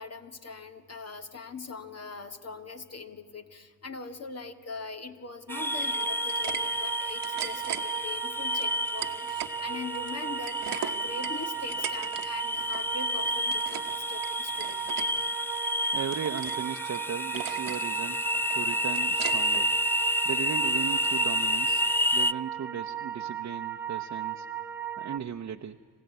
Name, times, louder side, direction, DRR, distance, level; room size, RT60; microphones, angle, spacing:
voice 1, 0.0-14.9, left 4 dB, 45° left, 8 dB, 2.0 m, -41 dB
sound 1, 5.5-22.3, left 1 dB, 5° left, 0.5 m, -30 dB
sound 2, 5.5-25.2, right 10 dB, 10° right, 1.7 m, -37 dB
sound 3, 5.8-6.6 6.9-7.8 8.5-9.5 9.9-12.3 12.5-12.9 13.2-13.9 14.2-15.1 15.5-16.6 16.9-17.0 17.3-17.8 18.1-19.6, right 11 dB, 85° right, 1.1 m, -38 dB
voice 2, 15.9-18.2 18.5-19.7 20.2-21.8 22.1-24.5 25.0-25.8, right 7 dB, 50° right, 5 dB, 0.8 m, -36 dB
26.5 x 15.5 x 9.3 m, 2.1 s
supercardioid pair, 50°, 34 cm